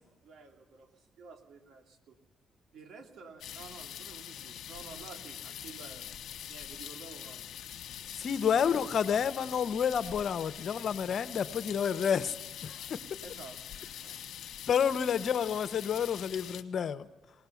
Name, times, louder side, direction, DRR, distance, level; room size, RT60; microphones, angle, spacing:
voice 1, 0.2-2.2 2.7-6.1 6.5-7.8 8.6-8.8 10.6-10.7 13.2-13.6 13.9-14.4, right 4 dB, 80° right, 4 dB, 2.3 m, -51 dB
sound 1, 3.4-16.6, left 10 dB, 75° left, 1.1 m, -44 dB
voice 2, 8.1-12.3 12.6-13.0 14.7-17.1, left 7 dB, 55° left, 14 dB, 0.8 m, -29 dB
21.0 x 17.5 x 7.1 m, 1.2 s
cardioid pair, 90°, 0 cm